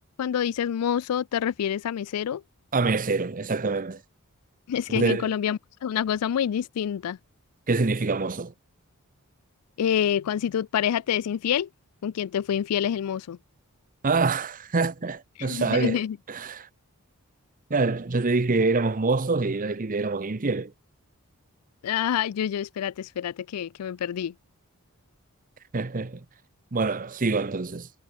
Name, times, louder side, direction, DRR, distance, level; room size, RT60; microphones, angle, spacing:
voice 1, 0.2-2.4 4.7-7.2 9.8-11.7 12.0-13.4 15.4-16.2 21.8-24.3, left 9 dB, 85° left, 0.4 m, -27 dB
voice 2, 2.7-4.0 4.9-5.3 7.7-8.5 14.0-16.0 16.3-16.7 17.7-20.7 25.7-26.2 26.7-27.9, right 3 dB, 40° right, 0.8 m, -25 dB
head